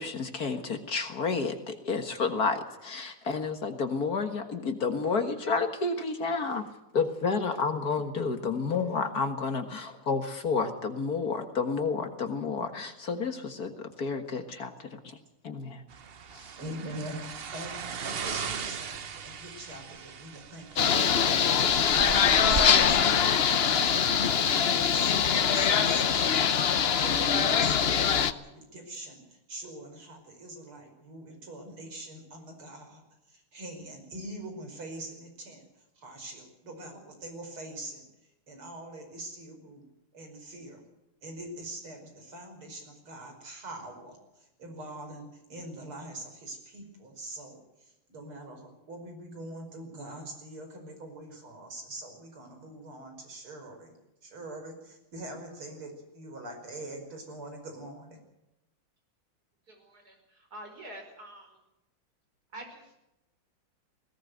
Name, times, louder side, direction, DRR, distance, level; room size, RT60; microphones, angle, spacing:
voice 1, 0.0-6.7 6.9-15.2 15.4-15.8 16.3-16.5, left 4 dB, 50° left, 7 dB, 2.0 m, -30 dB
sound 1, 15.9-24.2, right 6 dB, 60° right, 0.6 m, -38 dB
voice 2, 16.6-21.3 21.6-33.0 33.3-35.6 36.0-38.0 38.5-39.8 40.1-40.8 41.2-53.9 54.2-58.2, right 1 dB, 90° right, 4 dB, 6.0 m, -43 dB
sound 2, 20.8-28.3, left 7 dB, 65° left, 0.6 m, -23 dB
voice 3, 59.7-61.6 62.5-63.1, right 1 dB, 45° right, 3 dB, 5.8 m, -46 dB
20.5 x 18.0 x 8.0 m, 0.91 s
omnidirectional pair, 2.3 m